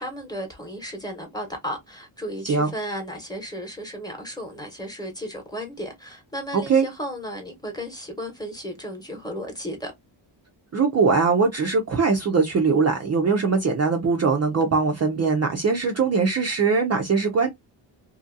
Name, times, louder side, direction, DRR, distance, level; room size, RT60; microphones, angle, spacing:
voice 1, 0.0-9.9, equal, 10° left, 1.0 m, -34 dB
voice 2, 6.5-6.8 10.7-17.5, right 4 dB, 35° right, 0.5 m, -21 dB
2.7 x 2.6 x 2.5 m
wide cardioid pair, 130°, 48 cm